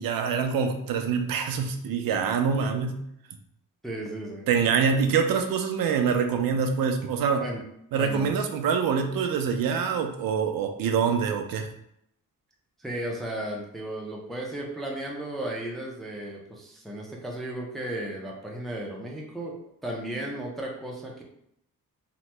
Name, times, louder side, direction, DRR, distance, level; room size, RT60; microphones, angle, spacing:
voice 1, 0.0-3.0 4.5-7.4 7.9-11.7, right 6 dB, 75° right, 5 dB, 0.5 m, -25 dB
voice 2, 3.8-4.5 7.4-7.6 7.9-8.3 12.8-19.6 19.8-21.2, right 1 dB, ahead, -2 dB, 0.3 m, -35 dB
2.9 x 2.1 x 3.1 m, 0.74 s
wide cardioid pair, 170°, 35 cm